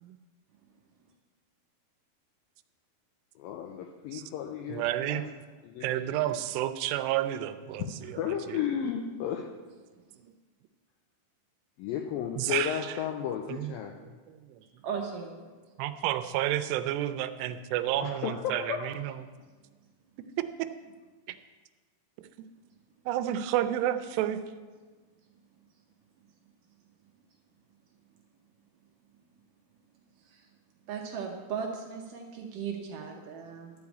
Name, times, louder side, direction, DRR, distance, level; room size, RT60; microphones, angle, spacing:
voice 1, 3.4-5.2 5.6-5.9 8.0-9.4 11.8-13.9 18.0-18.9, left 9 dB, 85° left, 3 dB, 2.0 m, -33 dB
voice 2, 4.7-5.2 5.8-8.6 12.4-12.9 13.5-14.4 15.8-19.2 20.4-20.7 23.1-24.4, right 12 dB, 90° right, 11 dB, 2.7 m, -31 dB
voice 3, 14.8-15.5 30.2-30.5 30.9-33.7, right 6 dB, 75° right, 1 dB, 2.1 m, -37 dB
12.5 x 4.8 x 8.2 m, 1.4 s
omnidirectional pair, 4.7 m